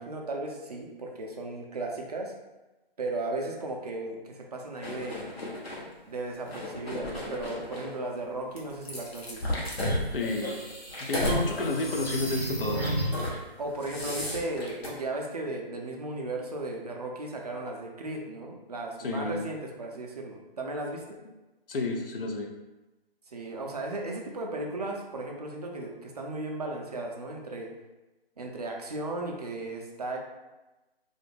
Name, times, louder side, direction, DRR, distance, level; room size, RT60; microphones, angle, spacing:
voice 1, 0.0-2.3 3.0-5.3 6.0-9.5 13.3-21.2 23.3-27.7 28.4-30.2, right 2 dB, 40° right, 0 dB, 0.4 m, -36 dB
sound 1, 4.8-5.8 6.4-7.9 8.6-11.4 11.9-12.1 12.7-13.4 13.7-14.9, left 1 dB, 85° left, 0.9 m, -33 dB
sound 2, 9.8-13.3, right 1 dB, 20° left, 0.5 m, -33 dB
voice 2, 10.1-10.6 11.0-12.9 19.0-19.4 21.7-22.5, left 2 dB, 65° left, 3 dB, 0.5 m, -30 dB
2.4 x 2.1 x 3.0 m, 1.1 s
figure-of-eight pair, 150°, 30 cm